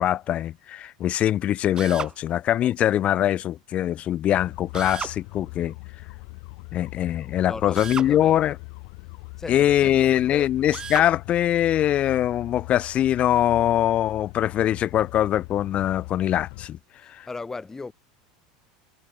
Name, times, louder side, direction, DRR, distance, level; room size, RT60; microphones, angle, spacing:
voice 1, 0.0-5.7 6.7-8.6 9.5-16.8 17.1-17.3, left 12 dB, 40° left, 0.8 m, -22 dB
Drill, 1.8-2.2 4.7-5.2 7.8-8.1 10.7-11.1, right 6 dB, 25° right, 0.5 m, -33 dB
voice 2, 2.6-3.0 7.5-8.4 9.4-10.5 17.3-17.9, left 3 dB, 15° left, 5.5 m, -38 dB
sound 1, 4.3-16.7, left 40 dB or more, 65° left, 6.4 m, -41 dB
supercardioid pair, 115°, 3 cm